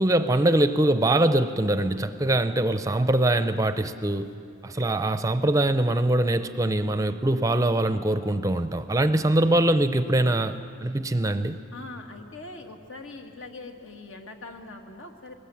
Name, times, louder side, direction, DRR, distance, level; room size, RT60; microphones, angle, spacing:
voice 1, 0.0-4.3 4.6-11.6, right 1 dB, 15° right, 11 dB, 0.5 m, -23 dB
voice 2, 11.7-15.3, left 3 dB, 80° left, 4 dB, 2.0 m, -42 dB
22.0 x 19.5 x 8.5 m, 2.6 s
head